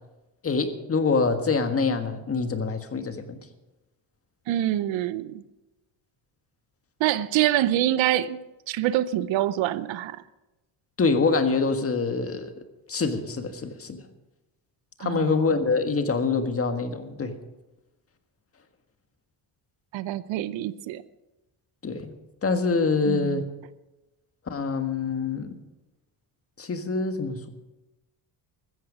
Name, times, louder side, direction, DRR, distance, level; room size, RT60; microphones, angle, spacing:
voice 1, 0.4-3.4 11.0-12.5 12.9-14.0 15.0-17.4 21.8-22.1 22.4-23.5 24.5-25.6 26.6-27.5, left 4 dB, 30° left, 1.6 m, -25 dB
voice 2, 4.5-5.4 7.0-10.2 15.0-15.5 19.9-21.0 23.1-23.4, right 13 dB, 80° right, 0.8 m, -26 dB
15.0 x 14.5 x 5.0 m
cardioid pair, 125°, 45 cm